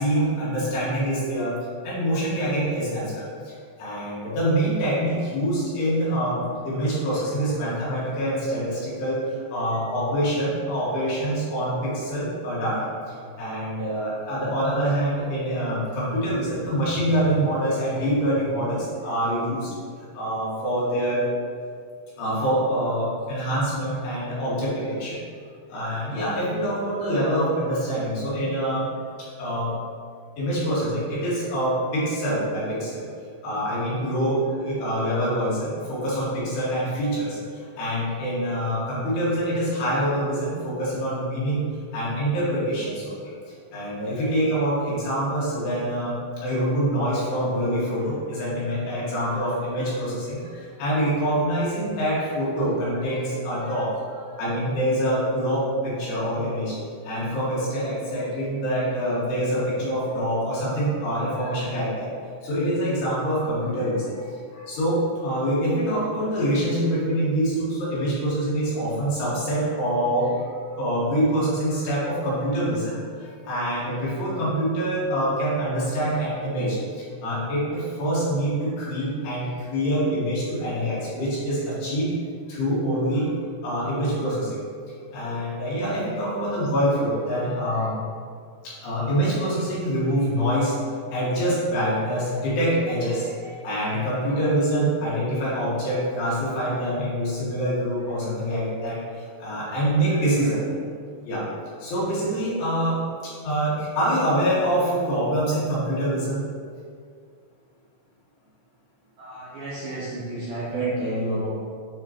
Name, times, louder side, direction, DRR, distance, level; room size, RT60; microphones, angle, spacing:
voice 1, 0.0-1.6 1.8-3.5 3.8-19.7 20.1-21.3 22.2-25.2 25.7-28.9 29.2-29.8 30.4-33.0 33.4-41.7 41.9-43.3 43.7-46.1 46.4-56.8 57.0-62.1 62.4-82.1 82.5-83.4 83.6-84.6 85.1-88.0 88.6-90.8 91.1-100.6 101.3-101.5 101.8-106.4, equal, 70° left, -8 dB, 3.8 m, -25 dB
voice 2, 109.2-111.5, right 1 dB, 65° right, -9 dB, 2.2 m, -29 dB
9.8 x 4.3 x 2.9 m, 2.2 s
omnidirectional pair, 5.0 m